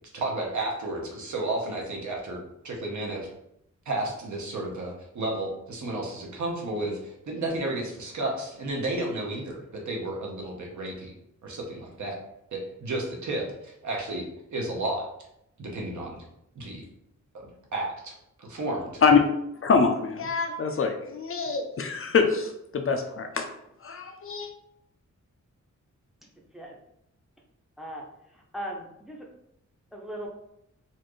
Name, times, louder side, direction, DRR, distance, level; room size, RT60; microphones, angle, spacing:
voice 1, 0.1-2.4 2.6-3.3 3.9-7.0 7.3-9.6 9.9-11.1 11.4-12.1 12.5-13.4 13.8-14.2 14.5-15.0 15.6-16.2 16.6-16.8 17.7-18.1 18.4-18.9, right 2 dB, 75° right, -1 dB, 1.0 m, -32 dB
voice 2, 19.6-23.5 23.8-24.5, left 5 dB, 50° left, 4 dB, 0.4 m, -24 dB
voice 3, 28.5-29.2 29.9-30.3, equal, ahead, 0 dB, 0.5 m, -37 dB
4.2 x 2.5 x 3.1 m, 0.79 s
wide cardioid pair, 165°, 29 cm